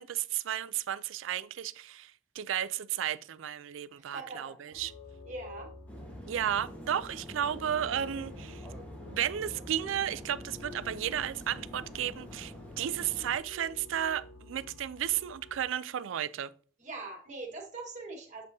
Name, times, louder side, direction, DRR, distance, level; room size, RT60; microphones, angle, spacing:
voice 1, 0.0-4.9 6.3-8.7 9.1-16.5, right 10 dB, 90° right, 0.4 m, -33 dB
voice 2, 3.9-4.9 5.2-5.7 16.8-18.4, right 3 dB, 40° right, 1.6 m, -42 dB
sound 1, 4.7-15.7, left 2 dB, 60° left, 0.8 m, -50 dB
sound 2, 5.9-13.4, equal, 10° left, 1.2 m, -46 dB
7.6 x 5.3 x 2.7 m
head